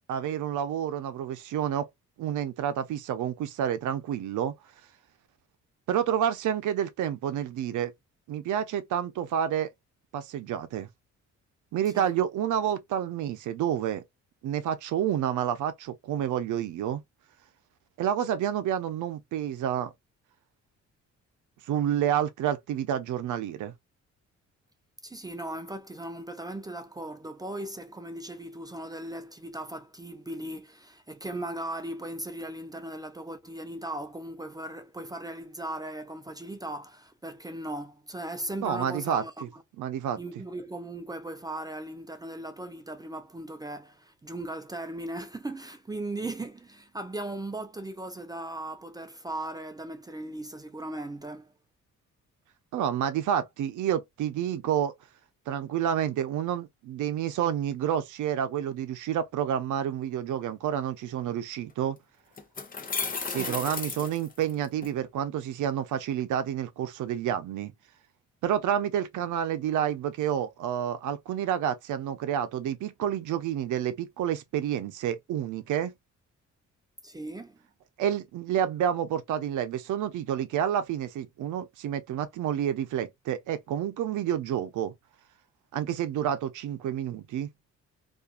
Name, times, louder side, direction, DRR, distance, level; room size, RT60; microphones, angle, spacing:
voice 1, 0.1-1.9 2.2-4.5 5.9-7.9 8.3-9.7 10.1-10.9 11.7-14.0 14.4-17.0 18.0-19.9 21.7-23.7 38.6-39.2 39.8-40.2 52.7-54.9 55.5-62.0 63.3-67.7 68.4-75.9 78.0-84.9 85.7-87.5, right 10 dB, 80° right, 0.6 m, -29 dB
voice 2, 25.0-39.6 40.2-51.5 63.3-63.6 77.0-77.6, right 1 dB, 15° right, 0.3 m, -38 dB
sound 1, 61.7-61.8 62.4-64.9, left 5 dB, 30° left, 0.6 m, -34 dB
2.5 x 2.4 x 2.4 m
cardioid pair, 100°, 30 cm